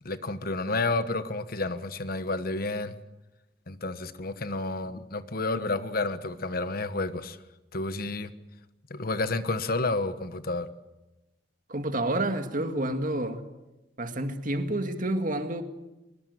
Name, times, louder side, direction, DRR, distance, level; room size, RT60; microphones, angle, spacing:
voice 1, 0.0-2.9 3.7-7.4 7.7-8.3 8.9-10.7, left 2 dB, 55° left, 1.2 m, -30 dB
voice 2, 11.7-13.4 14.0-15.6, right 1 dB, 50° right, 2.0 m, -29 dB
24.0 x 20.5 x 9.3 m
head